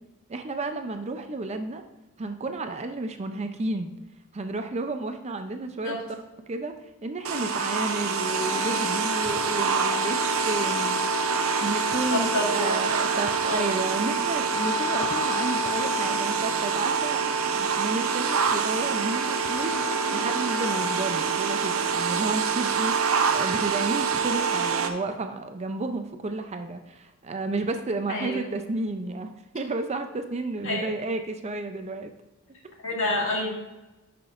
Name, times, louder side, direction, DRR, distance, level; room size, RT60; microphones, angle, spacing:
voice 1, 0.3-1.8 2.2-3.9 4.3-6.0 6.5-6.7 7.0-11.2 11.6-17.2 17.5-32.1, right 2 dB, 30° right, 7 dB, 0.5 m, -32 dB
sound 1, 7.2-24.9, right 5 dB, 65° right, 0.7 m, -26 dB
voice 2, 12.1-13.0 13.4-13.8 28.1-28.4 30.6-30.8 32.8-33.5, left 2 dB, 60° left, -2 dB, 2.1 m, -28 dB
10.5 x 6.0 x 2.5 m, 1.1 s
head